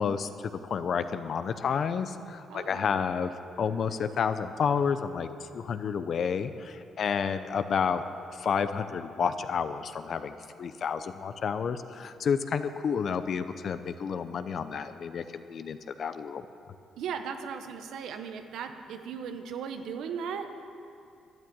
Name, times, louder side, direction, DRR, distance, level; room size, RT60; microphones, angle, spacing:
voice 1, 0.0-3.3 3.6-5.3 5.5-8.0 8.3-16.5, left 6 dB, 55° left, 11 dB, 0.7 m, -30 dB
voice 2, 2.5-3.0 17.0-20.6, right 6 dB, 80° right, 7 dB, 1.0 m, -37 dB
12.5 x 9.6 x 8.8 m, 2.5 s
cardioid pair, 90°, 0 cm